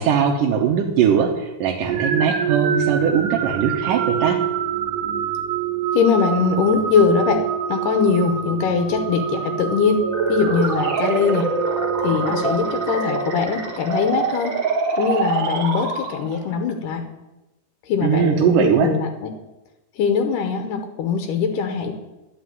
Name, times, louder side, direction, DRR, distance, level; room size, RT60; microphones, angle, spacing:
voice 1, 0.0-4.4 18.0-18.9, right 8 dB, 85° right, 1 dB, 2.6 m, -20 dB
sound 1, 1.8-13.8, right 8 dB, 65° right, 2.5 m, -26 dB
voice 2, 5.9-11.5 12.0-14.5 15.0-17.0 17.9-19.3 20.0-21.9, left 6 dB, 80° left, 5 dB, 2.6 m, -21 dB
sound 2, 10.0-16.5, right 4 dB, 45° right, 1.8 m, -25 dB
11.5 x 6.0 x 9.2 m, 1.0 s
omnidirectional pair, 3.8 m